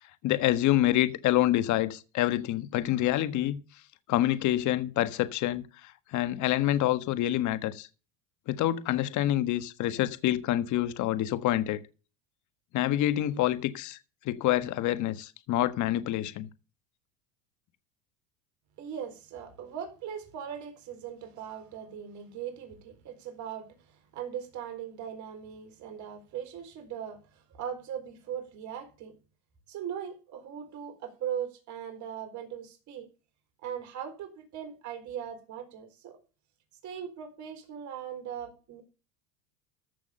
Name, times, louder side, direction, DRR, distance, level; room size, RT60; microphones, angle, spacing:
voice 1, 0.2-3.6 4.1-7.9 8.5-11.8 12.7-14.0 14.2-16.5, left 14 dB, 50° left, 1.5 m, -27 dB
voice 2, 18.8-29.1 29.7-33.1 33.6-36.2 36.8-38.8, right 8 dB, 45° right, 4.3 m, -39 dB
14.5 x 6.0 x 6.9 m
supercardioid pair, 110°, 39 cm